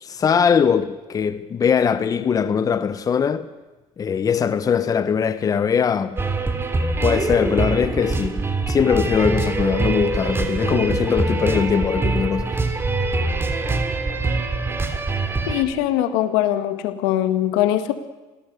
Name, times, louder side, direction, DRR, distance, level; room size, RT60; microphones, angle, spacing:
voice 1, 0.0-3.5 4.0-6.2 7.0-12.5, left 7 dB, 30° left, 1.1 m, -21 dB
sound 1, 6.2-15.6, right 3 dB, 20° right, 2.8 m, -24 dB
voice 2, 15.5-17.9, left 12 dB, 80° left, 2.0 m, -21 dB
26.0 x 17.5 x 8.2 m
supercardioid pair, 105°, 12 cm